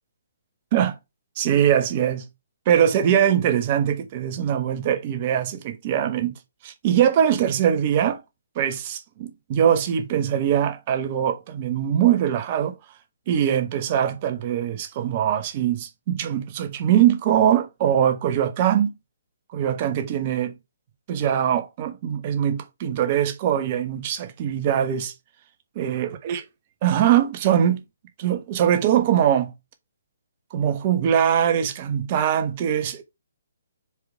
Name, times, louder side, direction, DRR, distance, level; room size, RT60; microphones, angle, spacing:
voice 1, 1.4-2.2 2.7-6.4 6.6-8.2 8.5-12.7 13.3-18.9 19.5-20.5 21.1-25.1 25.7-26.4 26.8-27.8 28.2-29.5 30.5-33.0, right 9 dB, 35° right, 1.2 m, -22 dB
5.0 x 4.8 x 4.7 m
figure-of-eight pair, 130°, 0 cm